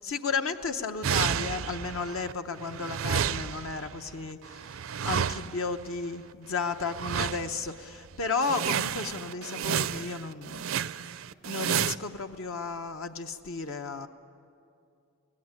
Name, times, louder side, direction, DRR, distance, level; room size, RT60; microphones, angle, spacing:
voice 1, 0.0-4.8 5.0-10.6 11.5-14.1, left 4 dB, 70° left, 6 dB, 0.8 m, -33 dB
sound 1, 1.0-2.3 2.6-5.8 6.8-7.7 8.0-8.1 8.4-12.0, right 8 dB, 65° right, 0.5 m, -31 dB
23.5 x 17.5 x 9.6 m, 2.5 s
head